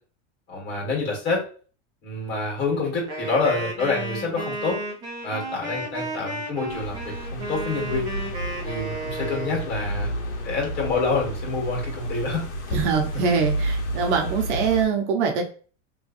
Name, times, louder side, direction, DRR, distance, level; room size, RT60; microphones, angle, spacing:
voice 1, 0.5-1.4 2.0-4.8 5.2-8.1 8.6-10.1 10.4-12.4, left 3 dB, 25° left, -2 dB, 1.7 m, -27 dB
Wind instrument woodwind instrument, 3.1-9.7, right 2 dB, 10° right, 0.3 m, -33 dB
sound 1, 6.7-14.9, right 1 dB, 85° left, 1.5 m, -30 dB
voice 2, 12.7-15.4, right 5 dB, 75° right, 2 dB, 0.9 m, -23 dB
3.3 x 3.1 x 2.5 m, 0.40 s
supercardioid pair, 170°, 35 cm